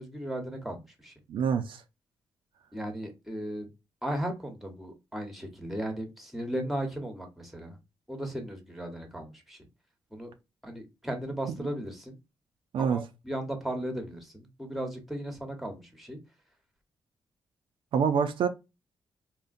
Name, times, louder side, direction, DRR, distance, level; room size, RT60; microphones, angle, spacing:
voice 1, 0.0-1.1 2.7-3.7 4.0-7.8 8.1-9.6 10.1-10.3 10.6-12.1 12.8-16.2, right 1 dB, ahead, 0.9 m, -36 dB
voice 2, 1.3-1.8 12.7-13.0 17.9-18.5, right 7 dB, 75° right, 0.4 m, -26 dB
3.6 x 2.1 x 2.5 m
cardioid pair, 90°, 9 cm